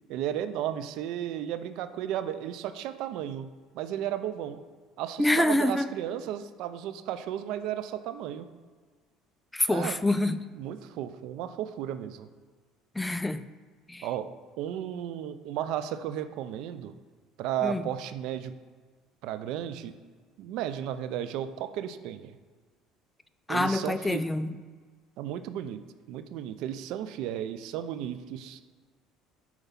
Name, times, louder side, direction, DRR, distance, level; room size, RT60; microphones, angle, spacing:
voice 1, 0.1-4.6 5.0-8.5 9.7-10.0 10.5-12.3 14.0-14.3 14.6-17.0 17.4-18.5 19.2-20.0 20.4-22.4 23.5-24.2 25.2-25.8 26.1-28.6, right 10 dB, 70° right, 11 dB, 0.5 m, -34 dB
voice 2, 5.2-5.9 9.5-10.4 13.0-13.5 13.9-14.1 17.6-17.8 23.5-24.6, left 1 dB, 10° left, 12 dB, 0.3 m, -26 dB
5.6 x 4.5 x 5.8 m, 1.5 s
supercardioid pair, 100°, 0 cm